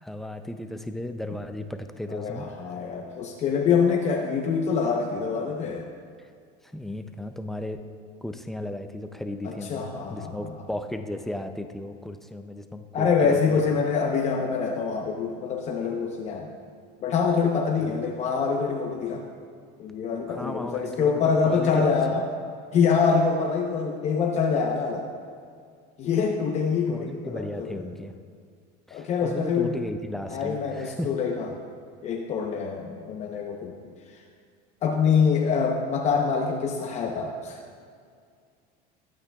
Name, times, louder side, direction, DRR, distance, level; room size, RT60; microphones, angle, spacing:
voice 1, 0.0-2.5 6.6-7.8 8.2-13.7 17.8-18.0 20.3-21.9 26.9-28.2 28.9-31.1, left 1 dB, ahead, 7 dB, 0.4 m, -35 dB
voice 2, 2.1-5.9 9.4-10.3 12.9-16.5 17.0-19.2 19.8-22.2 22.7-25.1 26.0-27.9 28.9-29.7 30.3-31.5 32.0-33.7 34.8-37.6, left 5 dB, 35° left, 2 dB, 0.8 m, -25 dB
21.5 x 8.6 x 2.3 m, 2.2 s
cardioid pair, 150°, 20 cm